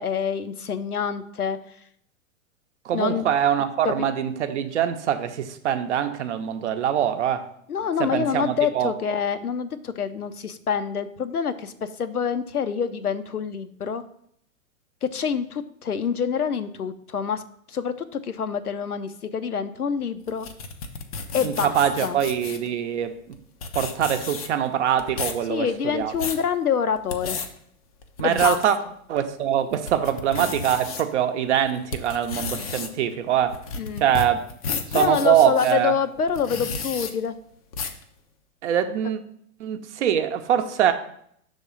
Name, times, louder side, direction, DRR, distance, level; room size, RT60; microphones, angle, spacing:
voice 1, 0.0-1.6 2.9-3.3 3.8-4.1 7.7-14.0 15.0-17.4 17.7-20.5 21.3-21.8 22.0-22.2 25.5-27.4 28.2-28.6 33.8-34.1 34.9-37.4 39.0-39.1, left 7 dB, 90° left, 11 dB, 0.6 m, -26 dB
voice 2, 2.8-7.5 8.0-8.9 21.4-23.4 23.7-26.1 28.2-28.8 29.1-33.6 34.0-34.4 34.9-36.0 38.6-39.2 39.6-40.9, right 10 dB, 55° right, 8 dB, 0.7 m, -23 dB
sound 1, 20.3-22.7 23.3-23.4 23.6-24.7 25.0-25.4 25.9-26.4 27.0-27.5 28.0-28.7 29.2-29.3 29.7-31.0 31.5-35.7 36.3-37.1 37.7-38.0, left 5 dB, 30° left, 0.4 m, -32 dB
6.2 x 3.5 x 5.4 m, 0.67 s
figure-of-eight pair, 105°, 43 cm